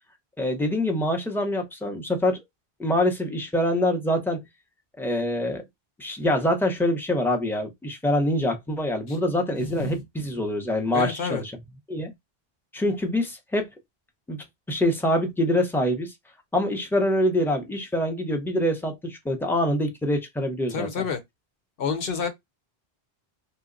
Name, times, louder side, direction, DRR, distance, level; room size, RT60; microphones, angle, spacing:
voice 1, 0.4-2.4 2.8-4.4 5.0-5.6 6.0-11.5 11.9-12.1 12.7-13.7 14.3-16.1 16.5-20.9, left 1 dB, 5° left, 0.5 m, -25 dB
voice 2, 9.6-10.0 10.9-11.4 20.7-21.2 21.8-22.3, left 5 dB, 65° left, 1.0 m, -29 dB
2.9 x 2.1 x 3.7 m
omnidirectional pair, 1.0 m